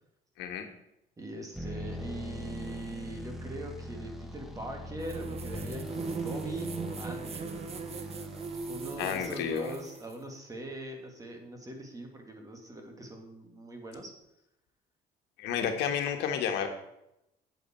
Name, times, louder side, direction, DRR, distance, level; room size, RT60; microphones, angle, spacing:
voice 1, 1.2-7.7 8.7-14.1, right 1 dB, 20° right, 3 dB, 2.1 m, -42 dB
sound 1, 1.5-9.5, equal, ahead, 1.1 m, -41 dB
sound 2, 5.0-10.2, right 4 dB, 35° right, 0.9 m, -39 dB
voice 2, 9.0-9.7 15.4-16.7, left 8 dB, 85° left, 5 dB, 1.4 m, -31 dB
9.1 x 8.4 x 4.4 m, 0.84 s
cardioid pair, 110°, 17 cm